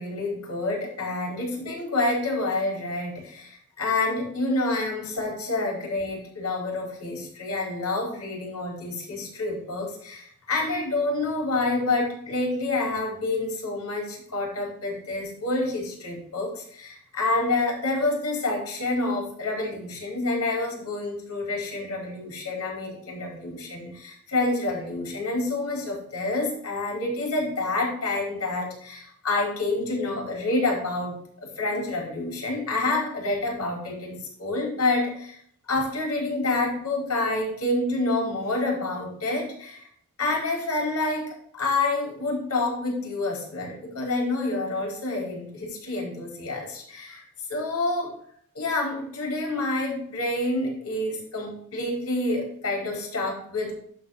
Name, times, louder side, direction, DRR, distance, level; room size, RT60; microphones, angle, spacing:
voice 1, 0.0-35.4 35.7-39.9 40.2-47.2 47.5-48.1 48.5-53.7, left 2 dB, 80° left, -1 dB, 4.7 m, -28 dB
11.5 x 4.3 x 5.8 m, 0.63 s
head